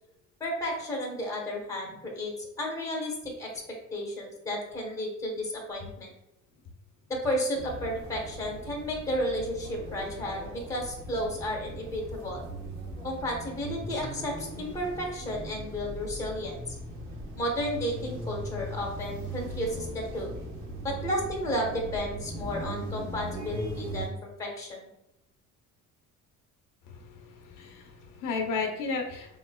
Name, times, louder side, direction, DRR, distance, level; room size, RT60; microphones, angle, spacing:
voice 1, 0.4-3.5 3.9-6.1 7.1-12.4 13.0-16.8 17.4-20.3 21.0-24.1 24.4-24.8, equal, 10° left, -2 dB, 0.8 m, -32 dB
sound 1, 7.5-24.1, right 1 dB, 80° right, 1.1 m, -39 dB
voice 2, 26.9-29.4, left 4 dB, 65° left, 2 dB, 0.7 m, -34 dB
5.1 x 3.0 x 2.2 m, 0.88 s
cardioid pair, 180°, 33 cm